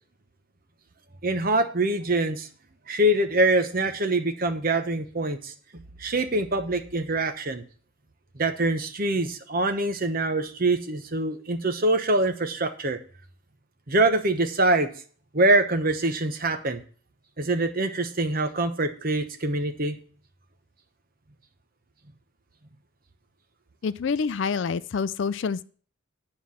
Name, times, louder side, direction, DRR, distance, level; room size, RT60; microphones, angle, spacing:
voice 1, 1.2-2.5 2.9-7.6 8.3-13.0 13.9-14.9 15.3-16.8 17.4-20.0, right 2 dB, 40° right, 7 dB, 1.0 m, -24 dB
voice 2, 23.8-25.6, left 5 dB, 55° left, 16 dB, 0.4 m, -27 dB
9.6 x 4.8 x 7.0 m, 0.42 s
head